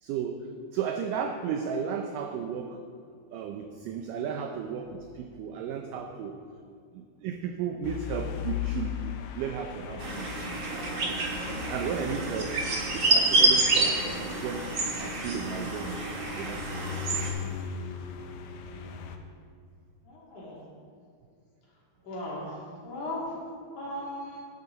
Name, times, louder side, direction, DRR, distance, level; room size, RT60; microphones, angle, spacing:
voice 1, 0.0-2.8 3.3-6.4 6.9-10.3 11.1-11.3 11.7-14.7 15.0-16.0 16.4-17.1, right 7 dB, 85° right, 5 dB, 1.9 m, -34 dB
sound 1, 7.8-19.2, left 8 dB, 85° left, 2.7 m, -39 dB
sound 2, 10.0-17.3, right 2 dB, 65° right, 1.0 m, -28 dB
voice 2, 10.7-11.3 18.7-19.1 20.0-20.6 22.0-23.2 23.8-24.4, left 1 dB, 55° left, -6 dB, 4.0 m, -39 dB
12.0 x 10.5 x 4.0 m, 2.3 s
omnidirectional pair, 4.4 m